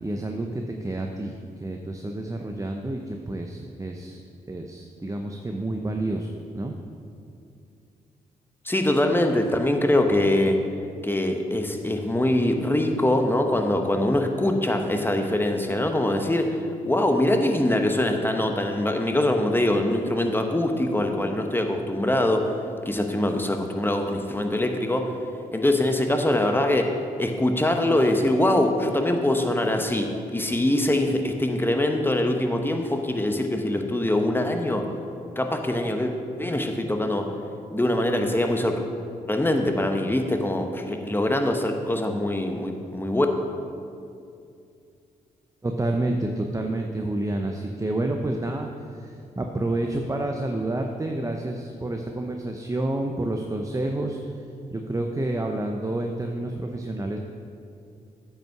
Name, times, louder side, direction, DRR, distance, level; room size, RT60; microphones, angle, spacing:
voice 1, 0.0-4.2 4.5-6.7 45.6-54.4 54.7-57.2, right 2 dB, 20° right, 3 dB, 0.7 m, -29 dB
voice 2, 8.6-10.6 11.0-16.6 16.8-22.5 22.8-25.1 25.5-34.9 35.4-36.1 36.4-37.3 37.7-38.8 39.3-43.3, left 1 dB, 10° left, 4 dB, 1.2 m, -23 dB
8.8 x 5.6 x 5.9 m, 2.5 s
hypercardioid pair, 40°, 17 cm